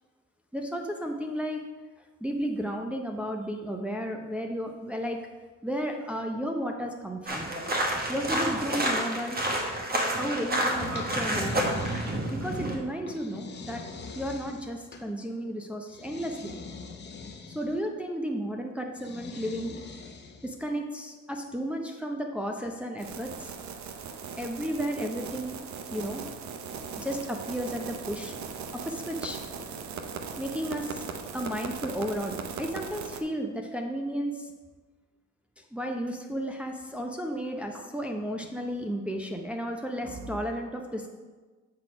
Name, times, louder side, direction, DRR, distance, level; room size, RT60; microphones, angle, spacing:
voice 1, 0.5-1.6 2.2-5.2 5.6-7.5 8.1-9.4 10.1-11.6 12.3-13.8 14.2-16.5 17.5-19.8 20.4-23.5 24.4-25.6 25.9-26.2 27.0-28.3 28.7-29.4 30.4-31.1 31.3-34.5 35.6-41.1, equal, 5° right, 1 dB, 0.6 m, -33 dB
sound 1, 7.3-12.7, right 1 dB, 30° right, 1.3 m, -29 dB
sound 2, 10.8-12.5 13.1-15.1 15.9-17.8 19.0-20.6, left 4 dB, 35° left, 0.9 m, -43 dB
sound 3, 23.0-33.2, right 6 dB, 65° right, 0.7 m, -39 dB
7.4 x 4.2 x 4.9 m, 1.3 s
cardioid pair, 90°, 30 cm